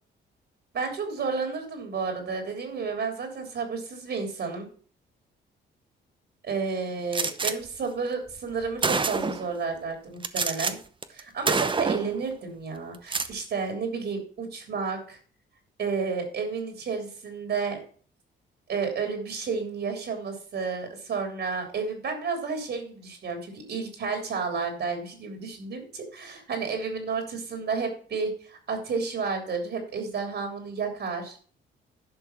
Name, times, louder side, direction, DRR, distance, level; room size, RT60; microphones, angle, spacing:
voice 1, 0.7-4.7 6.4-10.8 11.1-15.2 15.8-17.8 18.7-31.4, right 5 dB, 60° right, 4 dB, 3.3 m, -31 dB
Gunshot gunfire, 7.1-7.5 8.4-8.5 8.8-9.5 10.2-10.7 11.0-11.2 11.5-12.1 12.9-13.3, right 4 dB, 25° right, 0.9 m, -26 dB
11.0 x 5.6 x 6.0 m, 0.44 s
cardioid pair, 90°, 20 cm